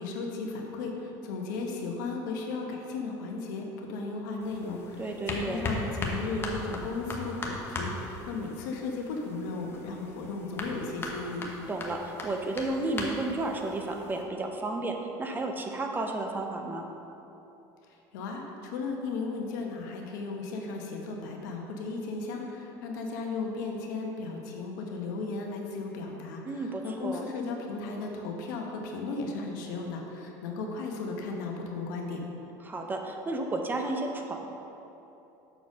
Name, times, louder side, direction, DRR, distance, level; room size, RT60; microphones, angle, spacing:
voice 1, 0.0-11.4 18.1-32.2, left 3 dB, 85° left, 1 dB, 1.0 m, -35 dB
sound 1, 4.4-14.2, left 2 dB, 25° left, 1.0 m, -39 dB
voice 2, 5.0-5.6 11.7-16.9 26.5-27.2 32.6-34.5, right 2 dB, 20° right, 3 dB, 0.7 m, -32 dB
6.8 x 4.1 x 6.1 m, 3.0 s
supercardioid pair, 115°, 10 cm